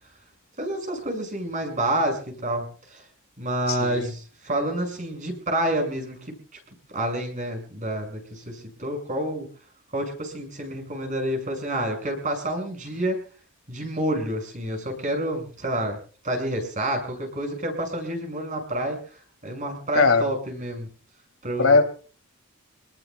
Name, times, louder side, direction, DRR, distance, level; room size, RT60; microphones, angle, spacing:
voice 1, 0.6-3.0 3.4-6.3 6.9-9.5 9.9-13.2 13.7-16.0 16.2-19.0 19.4-20.9 21.4-21.8, right 1 dB, 35° right, 3 dB, 6.5 m, -28 dB
voice 2, 3.7-4.1 19.9-20.2 21.6-21.8, left 4 dB, 70° left, 5 dB, 3.0 m, -19 dB
28.0 x 19.5 x 2.4 m, 0.40 s
head